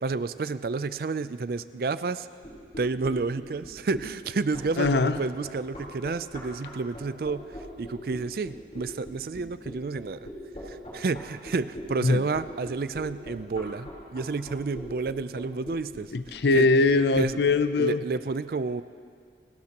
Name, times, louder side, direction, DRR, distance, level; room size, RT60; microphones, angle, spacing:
voice 1, 0.0-2.3 2.8-7.4 7.8-10.3 10.7-16.1 16.5-16.7 17.2-17.4 17.8-18.8, right 4 dB, 55° right, 14 dB, 0.4 m, -30 dB
sound 1, 2.4-17.5, equal, 40° left, 3.9 m, -41 dB
voice 2, 4.8-5.2 12.0-12.2 16.1-18.0, left 3 dB, 75° left, 12 dB, 0.5 m, -22 dB
28.0 x 12.5 x 2.9 m, 2.2 s
head